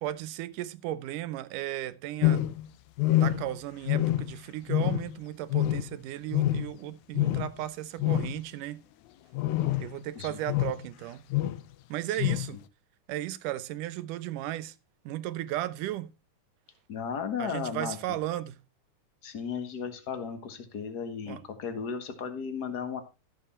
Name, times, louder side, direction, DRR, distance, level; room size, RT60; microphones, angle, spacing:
voice 1, 0.0-2.5 3.2-8.8 9.8-11.3 11.9-12.6 13.1-14.8 15.1-16.1 17.4-18.6 21.3-21.4, right 14 dB, 80° right, 2.2 m, -35 dB
sound 1, 2.2-2.7 3.0-3.6 3.9-4.4 4.7-5.2 5.5-6.0 6.3-6.8 7.2-7.5 8.0-8.4 9.4-9.9 10.5-10.8 11.3-11.6 12.2-12.5, left 14 dB, 75° left, 2.0 m, -26 dB
voice 2, 16.9-18.0 19.2-23.0, left 6 dB, 40° left, 1.7 m, -35 dB
13.5 x 7.4 x 4.3 m
omnidirectional pair, 3.8 m